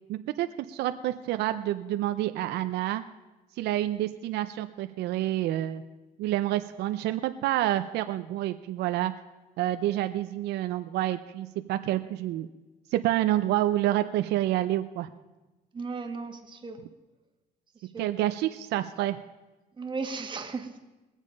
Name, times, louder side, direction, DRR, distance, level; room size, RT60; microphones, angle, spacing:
voice 1, 0.1-3.0 3.6-5.8 6.2-9.1 9.6-12.5 12.9-15.1 18.0-19.2, right 14 dB, 80° right, 10 dB, 0.6 m, -28 dB
voice 2, 15.7-16.8 17.9-18.1 19.8-20.8, right 4 dB, 30° right, 5 dB, 1.5 m, -35 dB
21.5 x 7.3 x 5.3 m, 1.1 s
cardioid pair, 110°, 17 cm